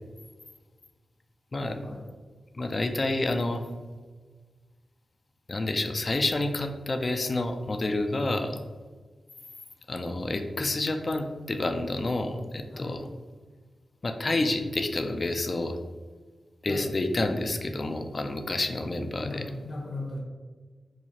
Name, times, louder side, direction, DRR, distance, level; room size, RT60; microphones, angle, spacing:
voice 1, 2.5-3.6 5.5-8.6 9.9-13.1 14.0-15.8 16.6-19.4, left 2 dB, 45° left, 6 dB, 0.4 m, -29 dB
voice 2, 12.7-13.0 16.7-16.9 19.2-20.2, left 2 dB, 75° left, -3 dB, 1.2 m, -37 dB
4.6 x 2.4 x 2.8 m, 1.4 s
cardioid pair, 45°, 0 cm